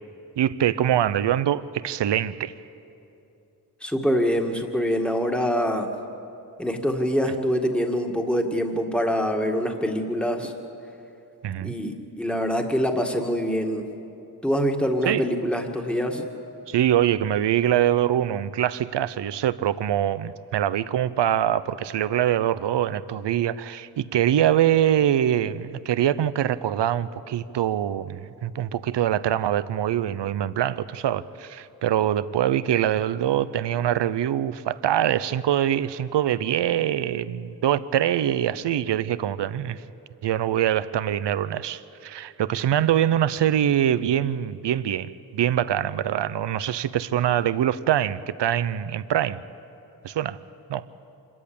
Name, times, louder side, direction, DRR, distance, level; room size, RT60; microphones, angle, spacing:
voice 1, 0.4-2.5 11.4-11.7 15.0-15.2 16.7-39.8 40.2-49.4 50.0-50.4 50.7-50.9, right 11 dB, 90° right, 16 dB, 0.6 m, -24 dB
voice 2, 3.8-5.9 6.6-10.5 11.6-13.8 14.4-16.3, equal, 5° left, 3 dB, 1.9 m, -25 dB
26.0 x 14.0 x 8.6 m, 2.8 s
cardioid pair, 65°, 41 cm